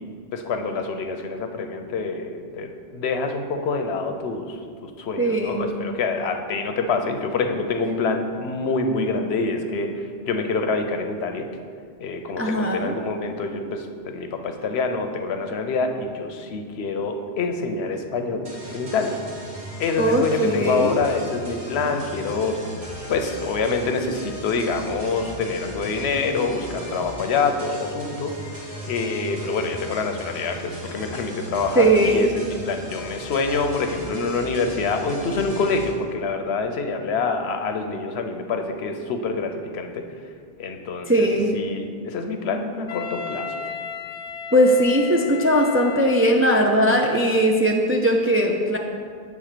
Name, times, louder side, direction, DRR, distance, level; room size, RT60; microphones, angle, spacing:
voice 1, 0.3-4.6 4.8-11.5 12.0-19.2 19.8-22.6 23.1-28.4 28.8-40.1 40.6-43.5, left 4 dB, 85° left, 6 dB, 0.9 m, -26 dB
voice 2, 5.2-5.8 12.4-12.9 20.0-21.0 31.8-32.3 41.1-41.6 44.5-48.8, equal, 20° right, 1 dB, 0.3 m, -19 dB
sound 1, 18.4-35.9, equal, 85° right, 1.8 m, -37 dB
Wind instrument woodwind instrument, 42.9-46.7, left 7 dB, 40° left, 0.9 m, -35 dB
8.2 x 3.4 x 6.6 m, 2.1 s
omnidirectional pair, 1.0 m